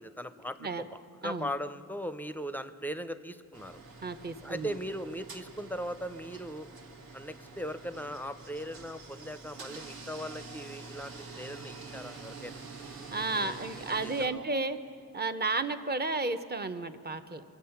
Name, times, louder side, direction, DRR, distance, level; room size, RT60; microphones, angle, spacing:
voice 1, 0.0-3.8 4.4-6.7 7.1-12.6 13.2-14.4, equal, 5° left, 11 dB, 0.5 m, -39 dB
sound 1, 3.5-14.3, right 4 dB, 80° right, 1.5 m, -47 dB
voice 2, 4.0-4.8 13.1-14.8 15.1-17.4, right 3 dB, 30° right, 8 dB, 0.8 m, -32 dB
23.0 x 8.0 x 5.8 m, 2.5 s
cardioid pair, 85°, 36 cm